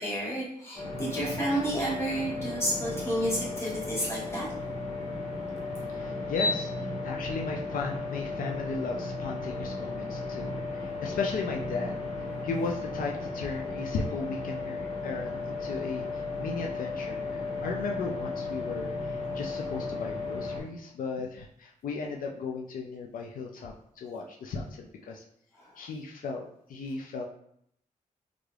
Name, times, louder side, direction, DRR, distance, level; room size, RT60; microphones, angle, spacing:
voice 1, 0.0-4.5 6.4-6.5, equal, 20° left, -7 dB, 1.3 m, -30 dB
sound 1, 0.7-20.6, left 3 dB, 45° left, 1.3 m, -35 dB
voice 2, 5.7-6.7 7.0-25.2 25.8-27.3, left 4 dB, 75° left, 0 dB, 0.4 m, -36 dB
3.6 x 3.3 x 2.3 m, 0.71 s
wide cardioid pair, 145°, 14 cm